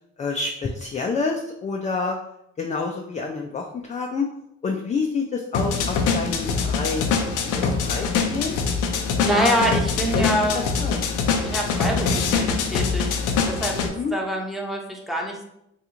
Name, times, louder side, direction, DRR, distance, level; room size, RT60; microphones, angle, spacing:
voice 1, 0.2-2.1 2.6-4.3 4.6-8.6 9.3-9.7 10.0-10.3 10.5-11.0 13.8-14.1, left 4 dB, 25° left, 1 dB, 0.3 m, -28 dB
sound 1, 5.5-13.9, left 5 dB, 90° left, 0.5 m, -24 dB
voice 2, 9.2-10.6 11.4-15.4, equal, ahead, -1 dB, 0.7 m, -26 dB
2.9 x 2.3 x 3.7 m, 0.80 s
cardioid pair, 90°, 30 cm